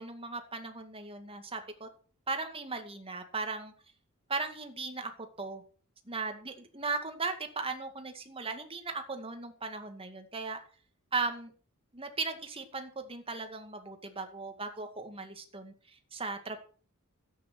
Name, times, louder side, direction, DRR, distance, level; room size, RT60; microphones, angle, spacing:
voice 1, 0.0-1.9 2.3-3.7 4.3-5.6 6.1-10.6 11.1-11.5 11.9-16.6, right 4 dB, 25° right, 6 dB, 2.2 m, -37 dB
13.0 x 9.5 x 6.1 m, 0.40 s
head